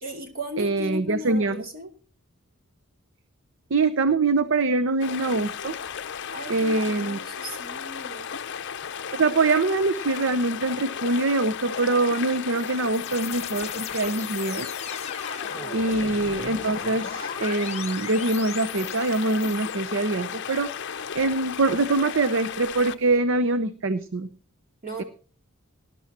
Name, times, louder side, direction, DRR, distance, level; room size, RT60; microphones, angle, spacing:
voice 1, 0.0-1.9 6.3-8.3 15.5-15.9 24.8-25.0, equal, 40° right, 3 dB, 2.5 m, -37 dB
voice 2, 0.6-1.6 3.7-5.7 6.5-7.2 9.1-14.7 15.7-24.3, right 3 dB, 55° right, 13 dB, 0.7 m, -24 dB
sound 1, 5.0-23.2, left 7 dB, 55° left, 0.6 m, -35 dB
sound 2, 12.2-19.8, left 7 dB, 30° left, 1.0 m, -38 dB
19.0 x 11.5 x 2.9 m, 0.36 s
head